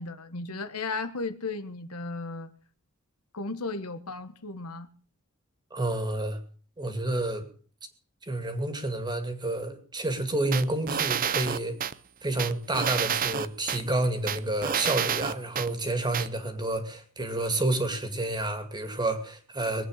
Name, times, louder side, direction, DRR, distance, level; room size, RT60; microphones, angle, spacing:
voice 1, 0.0-2.5 3.3-4.9, left 3 dB, 85° left, 1.4 m, -35 dB
voice 2, 5.7-6.4 6.8-7.5 8.3-11.8 12.2-19.9, right 2 dB, 20° right, 2.3 m, -29 dB
sound 1, 10.5-11.9 12.4-13.8 14.3-15.7 16.1-16.3, right 8 dB, 40° right, 0.6 m, -29 dB
21.5 x 8.7 x 6.5 m
head